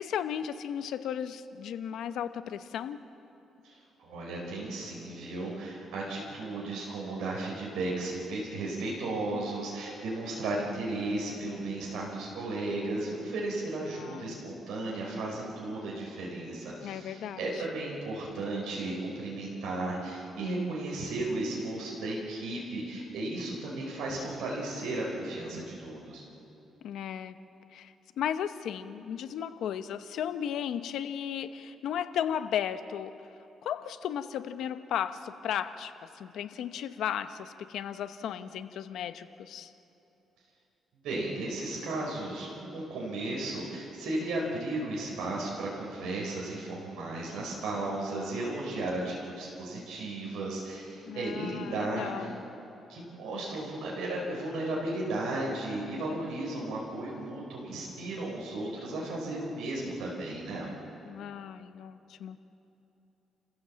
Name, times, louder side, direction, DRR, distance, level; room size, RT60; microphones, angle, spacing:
voice 1, 0.0-3.0 13.8-14.4 16.8-17.4 26.8-27.4 27.7-33.1 33.6-39.7 51.0-52.4 61.0-62.4, left 9 dB, 80° left, 11 dB, 0.9 m, -35 dB
voice 2, 3.6-26.2 41.0-52.3 52.9-60.7, right 2 dB, 90° right, -3 dB, 4.7 m, -35 dB
30.0 x 15.5 x 7.6 m, 3.0 s
cardioid pair, 115°, 0 cm